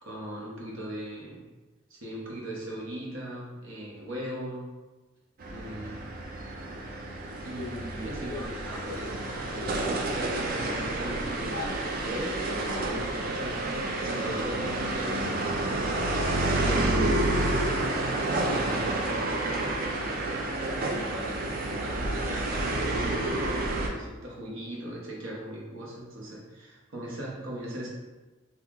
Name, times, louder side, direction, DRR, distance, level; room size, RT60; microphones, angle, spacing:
voice 1, 0.0-1.4 1.9-4.7 5.5-6.1 7.4-13.7 14.0-15.5 16.5-19.1 20.3-27.9, right 1 dB, 80° right, -3 dB, 0.9 m, -39 dB
sound 1, 5.4-23.9, right 2 dB, 45° right, 0.4 m, -29 dB
sound 2, 7.4-13.6, left 2 dB, 45° left, 0.3 m, -42 dB
2.9 x 2.3 x 3.6 m, 1.2 s
head